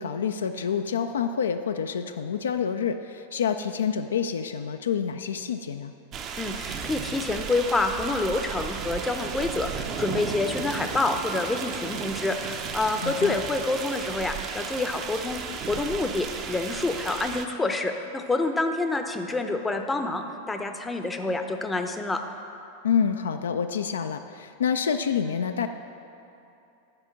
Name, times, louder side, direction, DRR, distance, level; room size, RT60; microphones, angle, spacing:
voice 1, 0.0-5.9 13.0-13.4 22.8-25.7, left 7 dB, 65° left, 8 dB, 0.3 m, -27 dB
sound 1, 6.1-17.4, right 6 dB, 35° right, 0.6 m, -34 dB
voice 2, 6.4-15.4 15.7-22.2, left 2 dB, 10° left, 6 dB, 0.6 m, -27 dB
9.7 x 5.1 x 5.7 m, 2.8 s
figure-of-eight pair, 90°, 0 cm